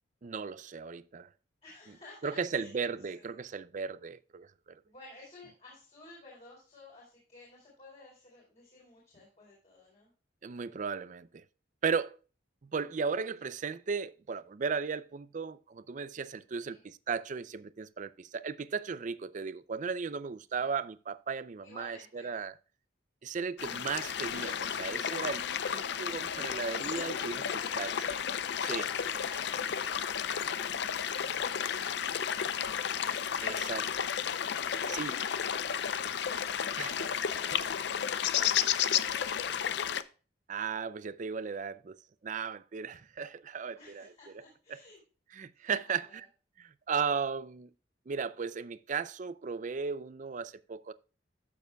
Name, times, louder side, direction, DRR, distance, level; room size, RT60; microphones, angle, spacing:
voice 1, 0.2-1.3 2.2-4.8 10.4-11.4 11.8-12.2 12.6-22.6 23.2-25.5 25.7-27.4 27.8-27.9 28.6-28.9 33.4-33.9 34.9-35.1 36.8-37.1 37.4-37.6 40.5-42.0 42.2-44.4 44.7-44.8 45.3-46.3 46.6-47.7 48.1-50.9, right 5 dB, 40° right, 0.4 m, -36 dB
voice 2, 1.6-2.7 3.1-3.2 4.8-10.1 16.6-16.8 20.5-20.7 21.6-22.4 26.1-27.9 28.5-32.7 38.9-39.9 43.8-45.0 45.5-46.2, left 2 dB, 35° left, 4.1 m, -54 dB
sound 1, 23.6-40.0, left 8 dB, 60° left, 0.5 m, -32 dB
13.5 x 6.9 x 2.2 m
head